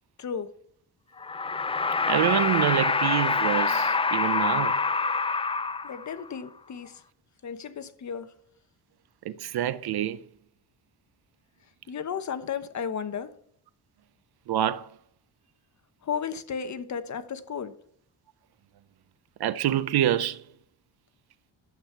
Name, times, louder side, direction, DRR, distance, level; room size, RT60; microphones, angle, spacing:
voice 1, 0.2-0.5 5.8-7.0 7.4-8.3 11.9-13.3 16.0-17.7, left 7 dB, 40° left, 1.0 m, -34 dB
sound 1, 1.2-6.3, left 4 dB, 15° left, 0.4 m, -26 dB
voice 2, 2.1-4.8 9.2-10.2 14.5-14.9 19.4-20.4, right 11 dB, 65° right, 0.7 m, -26 dB
11.5 x 8.3 x 5.8 m
cardioid pair, 145°, 41 cm